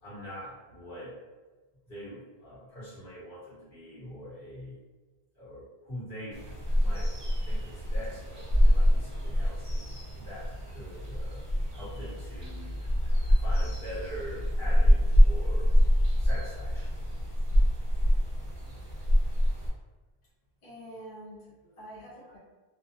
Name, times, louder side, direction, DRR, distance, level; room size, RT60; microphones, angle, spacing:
voice 1, 0.0-1.1 1.8-4.8 5.3-6.5 6.8-7.1 7.4-12.7 13.4-15.7 16.2-17.0, equal, 60° left, -8 dB, 1.3 m, -44 dB
sound 1, 6.3-19.7, equal, 40° right, 0.6 m, -25 dB
voice 2, 20.6-22.4, right 1 dB, 40° left, -8 dB, 0.8 m, -46 dB
2.4 x 2.2 x 2.6 m, 1.3 s
omnidirectional pair, 1.0 m